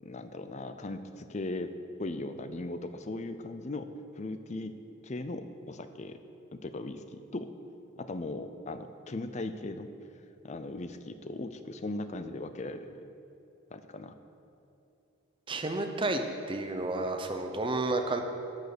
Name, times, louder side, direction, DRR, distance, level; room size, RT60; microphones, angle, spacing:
voice 1, 0.0-1.7 2.0-3.9 4.2-4.7 5.0-6.2 6.5-7.5 8.0-9.9 10.4-13.0 13.7-14.2, left 2 dB, 35° left, 9 dB, 0.5 m, -38 dB
voice 2, 15.5-16.2 16.5-18.2, right 2 dB, 25° right, 5 dB, 0.8 m, -31 dB
12.0 x 6.6 x 6.7 m, 2.8 s
head